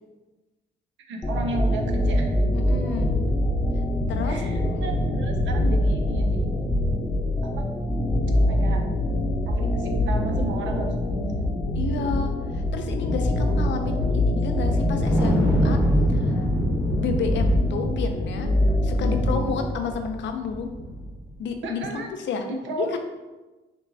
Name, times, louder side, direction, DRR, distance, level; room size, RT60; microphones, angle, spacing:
voice 1, 1.1-2.3 4.2-6.5 7.5-7.6 8.5-8.8 9.6-11.5 21.6-22.1 22.4-23.0, right 2 dB, 70° right, 3 dB, 0.7 m, -33 dB
sound 1, 1.2-19.7, left 1 dB, 20° left, 0.8 m, -24 dB
voice 2, 2.5-3.1 4.1-4.4 11.8-15.8 16.1-16.5 16.9-18.5 18.8-20.7 21.4-22.5 22.8-23.0, left 5 dB, 70° left, 6 dB, 0.6 m, -31 dB
Wind, 14.8-21.3, equal, 10° right, 1.1 m, -27 dB
5.4 x 3.0 x 2.7 m, 1.2 s
cardioid pair, 90°, 20 cm